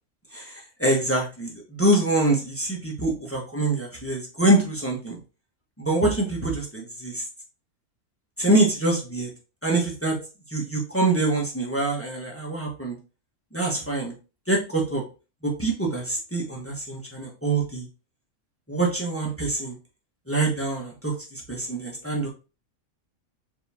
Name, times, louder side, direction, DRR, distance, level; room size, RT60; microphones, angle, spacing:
voice 1, 0.3-5.2 5.8-7.2 8.4-9.3 9.6-10.2 10.5-13.0 13.5-14.1 14.5-15.0 15.4-17.9 18.7-19.7 20.3-22.3, right 2 dB, 10° left, -2 dB, 1.0 m, -25 dB
4.8 x 2.9 x 3.5 m, 0.32 s
omnidirectional pair, 1.5 m